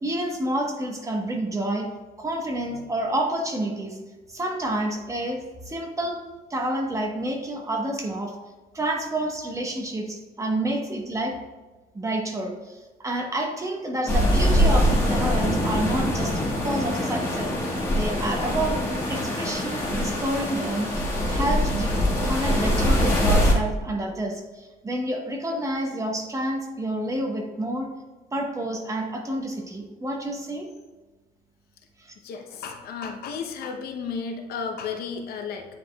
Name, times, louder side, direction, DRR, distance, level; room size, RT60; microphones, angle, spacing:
voice 1, 0.0-1.9 2.2-4.0 4.3-6.2 6.5-8.3 8.7-11.4 11.9-17.5 17.9-18.8 19.1-20.9 21.3-27.9 28.3-30.7 32.0-32.1, right 1 dB, 20° right, 2 dB, 1.1 m, -29 dB
sound 1, 14.1-23.5, equal, 15° left, 1.7 m, -23 dB
voice 2, 32.2-35.7, left 5 dB, 65° left, 4 dB, 0.8 m, -33 dB
9.1 x 4.9 x 2.3 m, 1.2 s
cardioid pair, 110°, 17 cm